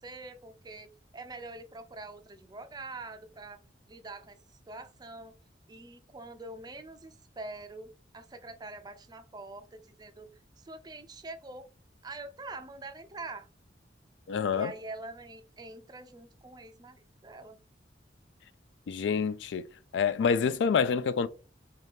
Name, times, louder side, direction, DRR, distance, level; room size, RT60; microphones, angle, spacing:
voice 1, 0.0-3.6 3.9-4.4 4.7-5.3 5.7-10.3 10.6-11.7 12.0-13.5 14.5-17.6, right 2 dB, 20° right, 0.4 m, -44 dB
voice 2, 14.3-14.7 18.9-19.6 19.9-21.3, left 6 dB, 75° left, 0.3 m, -27 dB
3.7 x 2.9 x 3.4 m
head